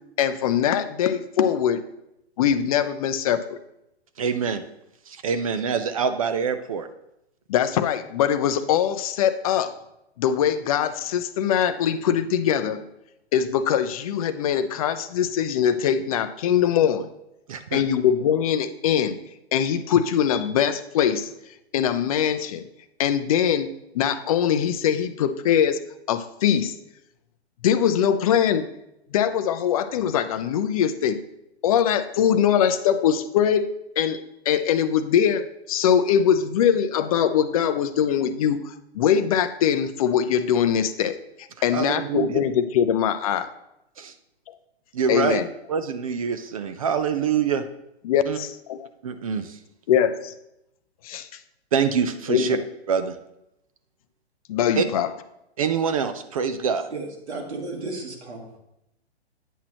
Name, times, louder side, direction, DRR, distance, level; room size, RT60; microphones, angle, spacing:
voice 1, 0.2-1.8 2.4-3.6 7.5-9.8 10.2-12.9 13.3-17.1 17.7-19.2 19.5-21.3 21.7-22.6 23.0-23.7 23.9-25.8 26.1-26.8 27.6-28.7 29.1-31.2 31.6-43.5 44.5-44.6 45.1-45.5 48.0-48.8 49.9-50.3 51.0-51.3 52.3-52.6 54.5-55.1, left 9 dB, 35° left, 11 dB, 0.5 m, -22 dB
voice 2, 4.2-4.6 5.1-6.9 17.5-17.8 41.7-42.4 44.0-44.1 44.9-45.4 45.7-47.6 48.3-48.4 49.0-49.6 51.7-52.6 52.9-53.1 54.8-54.9 55.6-56.9, right 6 dB, 35° right, 9 dB, 0.4 m, -25 dB
voice 3, 56.9-58.6, right 3 dB, 80° right, 2 dB, 1.8 m, -34 dB
9.1 x 5.9 x 2.9 m, 0.84 s
hypercardioid pair, 130°, 33 cm